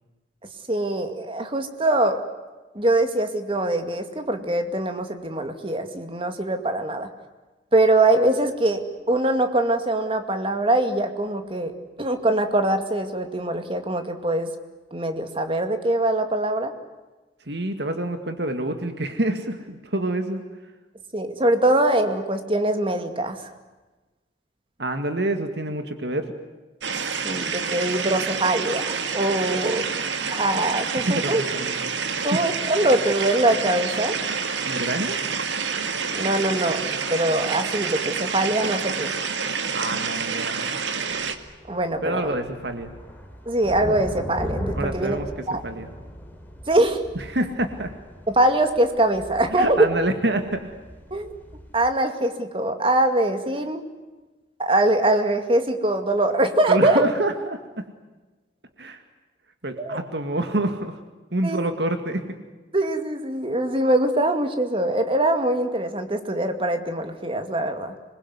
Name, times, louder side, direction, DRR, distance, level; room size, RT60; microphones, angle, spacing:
voice 1, 0.7-2.2 2.7-7.1 7.7-11.7 12.0-14.5 14.9-16.7 21.1-23.5 27.2-28.8 29.1-29.9 30.3-31.4 32.2-34.1 36.1-36.8 37.1-39.1 41.7-42.4 43.5-45.2 45.5-45.6 46.7-47.0 48.3-49.9 51.1-51.3 51.7-53.8 54.6-57.0 59.8-60.0 61.4-61.6 62.7-67.9, right 1 dB, 30° right, 7 dB, 2.3 m, -23 dB
voice 2, 17.5-20.5 24.8-26.3 31.0-31.7 32.1-32.5 34.6-35.2 39.7-40.6 42.0-42.9 44.8-45.9 47.2-47.9 49.5-50.7 56.7-57.8 58.8-59.0 59.6-61.0 61.3-62.3, right 1 dB, 65° right, 7 dB, 2.2 m, -27 dB
sound 1, 26.8-41.4, right 5 dB, 85° right, 2.1 m, -28 dB
sound 2, 41.1-51.9, equal, 10° left, 3.8 m, -38 dB
26.5 x 21.5 x 9.6 m, 1.2 s
head